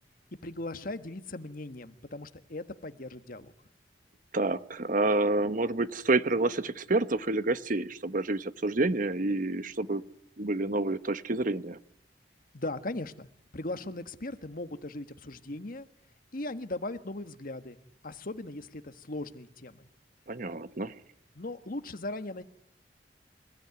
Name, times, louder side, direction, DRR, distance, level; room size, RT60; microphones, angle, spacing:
voice 1, 0.4-3.5 12.5-13.3 13.5-15.9 16.3-17.8 18.0-19.9 21.3-22.4, left 2 dB, 55° left, 10 dB, 1.5 m, -38 dB
voice 2, 4.3-10.0 10.4-11.8 20.3-20.9, right 2 dB, 50° right, 12 dB, 1.1 m, -28 dB
27.5 x 17.0 x 9.6 m, 0.71 s
head